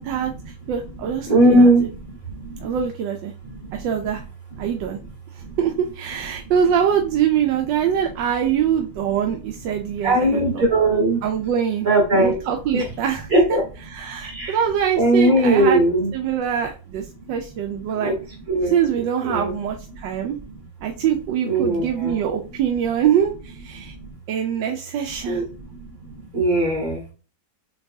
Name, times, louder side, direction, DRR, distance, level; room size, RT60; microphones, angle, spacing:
voice 1, 0.0-1.7 2.6-3.3 3.7-4.2 4.6-5.0 5.3-10.6 11.2-11.9 12.1-13.6 13.9-15.8 16.1-18.2 18.6-20.4 20.8-23.9 24.3-25.4, right 8 dB, 85° right, 3 dB, 1.3 m, -24 dB
voice 2, 1.3-1.8 10.0-11.2 11.8-12.4 12.7-12.8 13.3-13.6 14.3-14.5 15.0-16.1 18.0-18.1 18.5-18.7 19.2-19.5 21.4-22.1 25.3-25.4 26.3-27.0, right 1 dB, 50° right, -2 dB, 2.8 m, -18 dB
6.8 x 2.4 x 2.6 m, 0.34 s
omnidirectional pair, 2.0 m